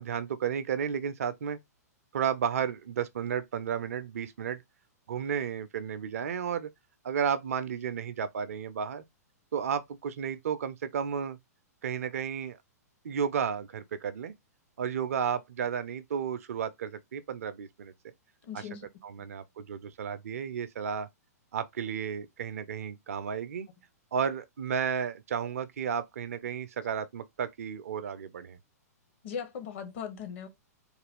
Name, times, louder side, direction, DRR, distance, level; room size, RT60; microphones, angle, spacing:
voice 1, 0.0-1.6 2.1-4.6 5.1-6.7 7.0-9.0 9.5-11.4 11.8-12.6 13.0-14.3 14.8-17.9 19.0-21.1 21.5-23.7 24.1-28.6, right 7 dB, 60° right, 0.4 m, -33 dB
voice 2, 18.4-18.9 29.2-30.5, left 7 dB, 45° left, 0.7 m, -38 dB
2.5 x 2.3 x 3.4 m
figure-of-eight pair, 110°, 9 cm